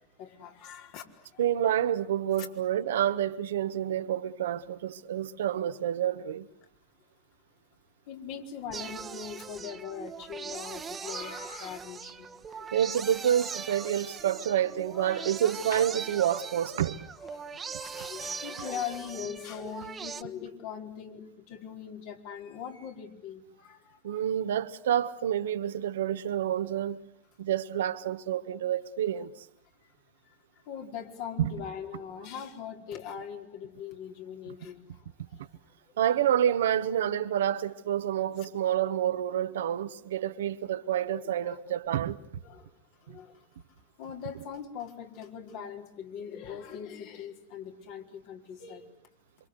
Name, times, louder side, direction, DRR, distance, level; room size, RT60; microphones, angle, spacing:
voice 1, 0.0-1.4 1.8-1.9 2.4-2.5 2.8-2.9 8.1-12.9 13.8-13.9 14.3-14.4 14.9-15.8 17.2-17.5 17.8-24.2 29.8-29.9 30.6-35.5 35.9-36.2 38.0-38.1 38.4-38.5 41.1-41.6 42.4-42.7 43.0-43.5 44.0-48.9, left 8 dB, 60° left, 4.6 m, -41 dB
voice 2, 1.4-6.5 12.7-17.0 24.0-27.0 27.4-29.3 31.4-31.5 36.0-42.2 43.1-43.2, right 10 dB, 80° right, 1.3 m, -28 dB
sound 1, 8.7-20.2, right 6 dB, 25° right, 1.3 m, -40 dB
27.0 x 25.5 x 8.2 m
hypercardioid pair, 90°, 0 cm